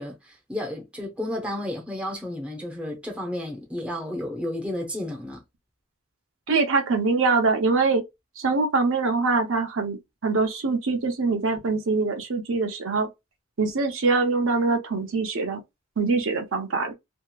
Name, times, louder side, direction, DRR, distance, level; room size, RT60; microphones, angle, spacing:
voice 1, 0.0-5.4, left 1 dB, 5° right, 0.6 m, -32 dB
voice 2, 6.5-8.0 8.4-13.1 13.6-15.6 16.0-16.9, right 4 dB, 65° right, 0.6 m, -23 dB
2.8 x 2.4 x 2.2 m
head